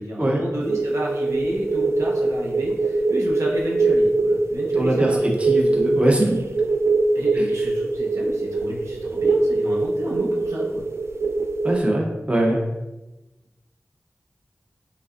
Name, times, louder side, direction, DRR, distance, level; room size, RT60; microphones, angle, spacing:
voice 1, 0.0-5.4 7.1-10.8, right 1 dB, 80° right, -3 dB, 0.9 m, -31 dB
sound 1, 0.6-11.8, right 3 dB, 65° right, 0.3 m, -22 dB
voice 2, 4.8-6.4 7.4-7.5 11.6-12.6, right 1 dB, 25° right, -1 dB, 0.8 m, -22 dB
4.8 x 3.4 x 2.6 m, 1.0 s
wide cardioid pair, 50°, 5 cm